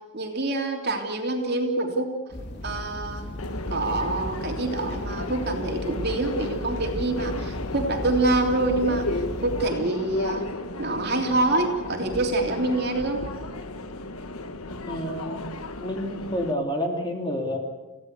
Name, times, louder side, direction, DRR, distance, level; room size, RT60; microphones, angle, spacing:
voice 1, 0.1-2.1 2.6-3.2 3.7-10.5 10.8-13.2, right 2 dB, 45° right, 3 dB, 3.1 m, -26 dB
sound 1, 2.3-9.7, equal, 50° left, 3.1 m, -35 dB
Subway metro underground, 3.4-16.5, left 2 dB, 80° left, 1.6 m, -34 dB
voice 2, 14.9-15.4 15.8-17.6, equal, 20° left, 2 dB, 3.0 m, -29 dB
29.0 x 16.5 x 8.2 m, 1.2 s
head